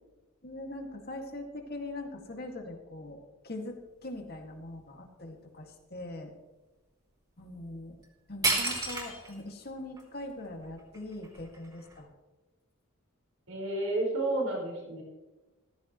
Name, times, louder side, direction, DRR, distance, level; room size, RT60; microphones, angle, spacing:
voice 1, 0.4-6.3 7.4-8.0 8.3-12.1, left 2 dB, 50° left, 2 dB, 2.1 m, -42 dB
sound 1, 8.0-8.1 8.4-9.4 10.0-10.1 10.6-12.0, right 2 dB, 20° right, 3.0 m, -31 dB
voice 2, 13.5-15.0, right 2 dB, 85° right, -1 dB, 4.8 m, -31 dB
14.5 x 14.0 x 3.1 m, 1.1 s
head